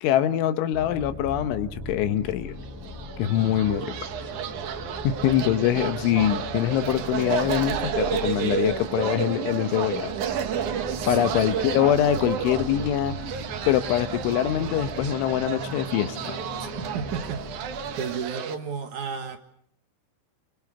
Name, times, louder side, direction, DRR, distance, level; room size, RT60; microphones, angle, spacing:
voice 1, 0.0-2.6 3.2-4.0 5.1-10.2 11.1-13.2 13.7-16.4, left 11 dB, 75° left, 9 dB, 3.4 m, -24 dB
sound 1, 0.7-18.2, left 1 dB, 5° left, 7.6 m, -39 dB
sound 2, 2.7-18.6, right 8 dB, 80° right, 1.7 m, -31 dB
voice 2, 16.9-17.6 18.0-19.4, right 6 dB, 60° right, 6 dB, 2.1 m, -32 dB
26.5 x 24.5 x 6.8 m, 0.67 s
omnidirectional pair, 5.8 m